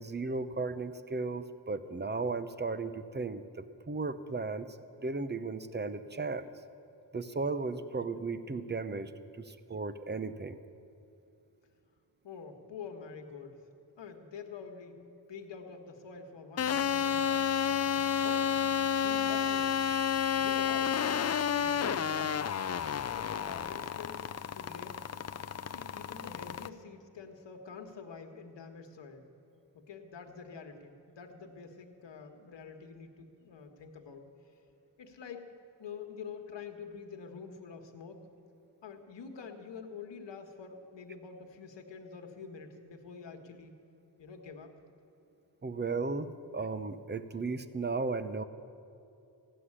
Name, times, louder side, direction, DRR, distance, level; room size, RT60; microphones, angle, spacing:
voice 1, 0.0-4.7 5.0-6.5 7.1-9.1 9.4-10.6 45.6-48.4, right 3 dB, 25° right, 12 dB, 0.8 m, -35 dB
voice 2, 12.2-13.6 14.0-15.0 15.3-17.5 18.2-18.5 19.0-19.8 20.3-21.0 21.6-22.4 22.9-24.3 24.5-25.0 25.7-29.2 29.7-34.3 35.0-38.2 38.8-43.7 44.2-44.7, left 5 dB, 75° left, 4 dB, 1.6 m, -46 dB
sound 1, 16.6-26.7, left 8 dB, 35° left, 0.5 m, -31 dB
15.0 x 7.8 x 9.9 m, 2.7 s
cardioid pair, 55°, 43 cm